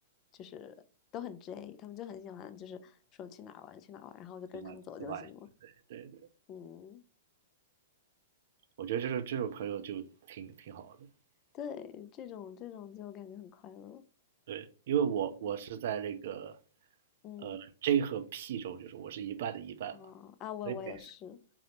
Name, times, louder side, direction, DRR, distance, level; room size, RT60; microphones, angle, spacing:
voice 1, 0.3-0.8 1.1-5.5 6.5-7.0 11.5-14.0 15.4-15.5 17.2-17.6 19.9-21.4, left 9 dB, 30° left, 0.3 m, -45 dB
voice 2, 5.6-6.2 8.8-11.0 14.5-16.6 17.4-20.0 20.7-20.8, right 9 dB, 60° right, 0.4 m, -35 dB
3.8 x 2.0 x 2.8 m
figure-of-eight pair, 110°, 0 cm